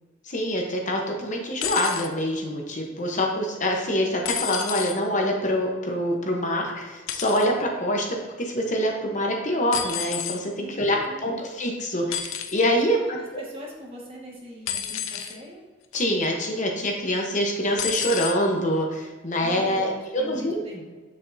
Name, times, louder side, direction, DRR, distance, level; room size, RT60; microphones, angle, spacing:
voice 1, 0.3-13.4 15.9-20.6, equal, 40° left, 1 dB, 0.9 m, -25 dB
sound 1, 1.6-2.1 4.2-5.0 7.1-7.5 9.7-10.4 12.1-12.6 14.7-15.4 15.9-16.2 17.8-18.4 19.4-19.5, left 9 dB, 80° left, 0.6 m, -30 dB
voice 2, 10.6-11.4 12.8-13.1 13.4-15.6 19.4-20.8, equal, 30° right, -2 dB, 1.6 m, -42 dB
8.1 x 6.9 x 2.7 m, 1.4 s
head